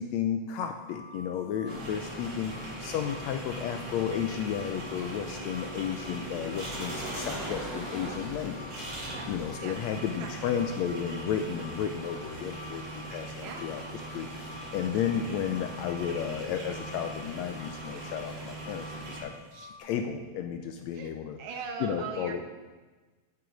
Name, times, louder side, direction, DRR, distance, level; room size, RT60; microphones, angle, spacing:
voice 1, 0.0-13.8 14.1-19.3 19.8-21.4 21.8-22.4, left 8 dB, 80° left, 6 dB, 1.6 m, -33 dB
sound 1, 0.8-19.8, left 3 dB, 40° left, 3.1 m, -49 dB
sound 2, 1.6-19.2, right 1 dB, 40° right, 4.5 m, -40 dB
voice 2, 10.2-10.6 13.4-13.7 19.5-19.7 20.9-21.1 21.4-22.4, right 5 dB, 70° right, 4 dB, 2.1 m, -40 dB
9.9 x 7.1 x 5.1 m, 1.3 s
omnidirectional pair, 3.6 m